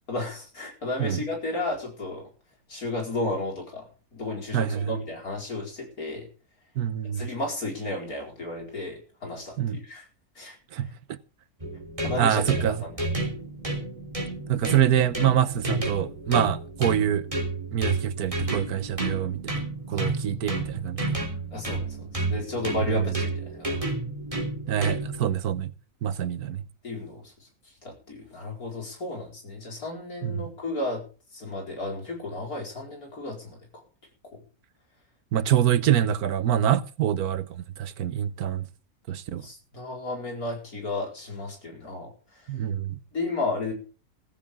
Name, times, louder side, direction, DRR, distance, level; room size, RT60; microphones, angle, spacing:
voice 1, 0.1-2.3 2.7-3.9 4.1-6.3 7.2-10.1 10.4-10.6 12.0-12.5 13.2-13.3 20.0-20.2 21.5-23.9 26.8-27.2 27.8-31.0 31.3-33.6 39.4-42.1 43.1-43.7, left 2 dB, 75° left, 5.2 m, -33 dB
voice 2, 4.5-5.0 6.8-7.2 9.6-9.8 10.7-11.2 12.1-12.8 14.5-17.3 17.7-21.2 22.8-23.2 24.7-25.7 26.0-26.6 30.2-30.5 35.3-38.7 39.1-39.5 42.5-43.0, right 10 dB, 85° right, 1.4 m, -25 dB
sound 1, 11.6-25.3, right 2 dB, 20° right, 3.3 m, -31 dB
15.5 x 15.0 x 3.6 m
omnidirectional pair, 1.6 m